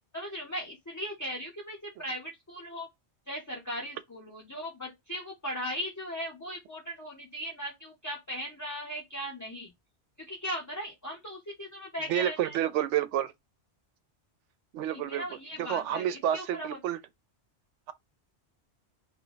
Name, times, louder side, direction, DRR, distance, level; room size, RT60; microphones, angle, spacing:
voice 1, 0.1-2.9 3.3-9.7 10.2-12.6 14.9-16.8, equal, 15° left, 0.8 m, -38 dB
voice 2, 12.1-13.3 14.7-15.2 15.7-17.0, right 11 dB, 90° right, 0.9 m, -29 dB
3.3 x 2.3 x 3.8 m
omnidirectional pair, 1.2 m